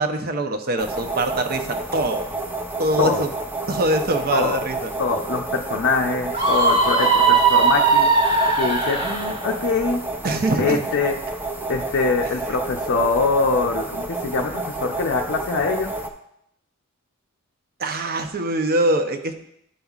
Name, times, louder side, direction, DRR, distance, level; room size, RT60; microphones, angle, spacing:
voice 1, 0.0-2.2 2.8-3.3 3.7-4.9 10.2-10.8 17.8-19.4, right 1 dB, 45° right, 7 dB, 0.7 m, -23 dB
sound 1, 0.8-16.1, right 2 dB, 10° right, 0.5 m, -30 dB
voice 2, 4.3-4.6 5.0-8.1 8.6-10.0 10.6-11.1 11.7-15.9, left 4 dB, 55° left, 1 dB, 0.5 m, -23 dB
Screaming, 6.3-9.3, right 4 dB, 25° right, 1.3 m, -18 dB
11.5 x 5.3 x 2.4 m, 0.76 s
head